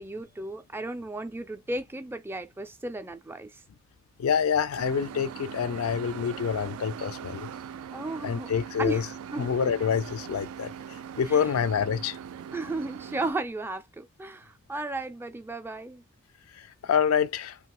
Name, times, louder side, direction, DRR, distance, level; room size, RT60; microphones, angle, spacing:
voice 1, 0.0-3.6 7.9-8.5 8.8-9.5 11.3-11.5 12.5-16.0, right 2 dB, 10° right, 0.3 m, -34 dB
voice 2, 4.2-7.5 8.2-9.1 9.4-12.2 16.5-17.6, left 7 dB, 85° left, 0.4 m, -27 dB
sound 1, 4.8-13.3, right 8 dB, 85° right, 0.3 m, -41 dB
2.9 x 2.2 x 2.9 m
head